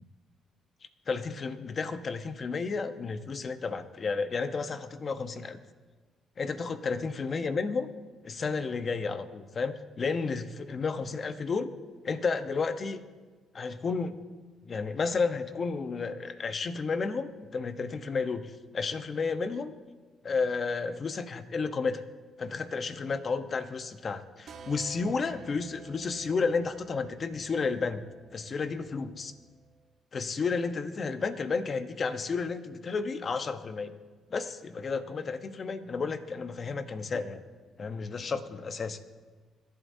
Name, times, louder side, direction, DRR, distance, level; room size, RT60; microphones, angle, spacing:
voice 1, 1.1-5.6 6.4-7.9 8.2-11.7 12.0-13.0 13.5-14.1 14.7-19.7 20.2-22.0 22.4-28.1 28.3-29.3 30.1-33.9 34.3-37.4 37.8-39.0, left 4 dB, 45° left, 10 dB, 0.9 m, -32 dB
sound 1, 24.5-29.9, right 4 dB, 60° right, 1.3 m, -51 dB
26.0 x 11.5 x 2.7 m, 1.4 s
cardioid pair, 90°, 0 cm